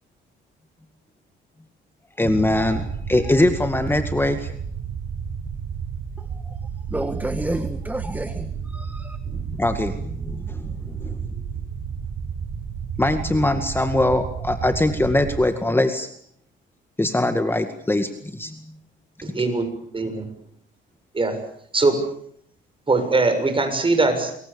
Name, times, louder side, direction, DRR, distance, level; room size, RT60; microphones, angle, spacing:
voice 1, 2.2-4.5 9.3-11.2 13.0-16.1 17.0-18.8 19.2-19.5, left 1 dB, 10° left, 2.1 m, -22 dB
sound 1, 2.3-15.4, right 6 dB, 75° right, 7.3 m, -32 dB
voice 2, 6.2-6.6 6.9-9.2, right 1 dB, 10° right, 1.7 m, -30 dB
voice 3, 19.3-20.3 21.1-21.5 21.7-22.1 22.9-24.4, right 3 dB, 25° right, 6.9 m, -21 dB
28.0 x 22.5 x 7.1 m
cardioid pair, 90°, 20 cm